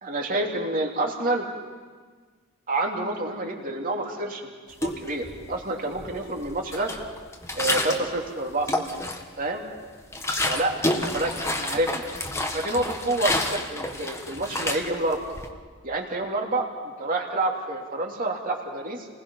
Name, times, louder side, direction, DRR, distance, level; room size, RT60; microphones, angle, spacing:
voice 1, 0.0-1.5 2.7-4.5 4.8-6.9 7.5-8.7 9.4-9.6 10.4-11.3 11.6-12.1 12.5-15.2 15.8-19.1, right 2 dB, 40° right, 1 dB, 2.9 m, -28 dB
sound 1, 4.7-5.6 5.9-8.1 8.5-9.4 9.8-15.5, left 1 dB, 15° left, 1.4 m, -29 dB
29.5 x 20.0 x 5.6 m, 1.5 s
head